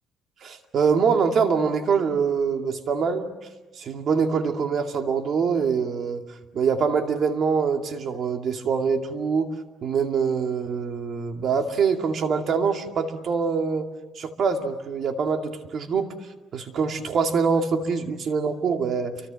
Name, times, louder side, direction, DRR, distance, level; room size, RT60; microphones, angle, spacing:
voice 1, 0.4-3.3 3.8-6.2 6.5-9.5 9.8-13.9 14.2-16.1 16.5-19.1, right 5 dB, 50° right, 5 dB, 2.3 m, -24 dB
29.5 x 25.0 x 7.6 m, 1.2 s
cardioid pair, 135°, 0 cm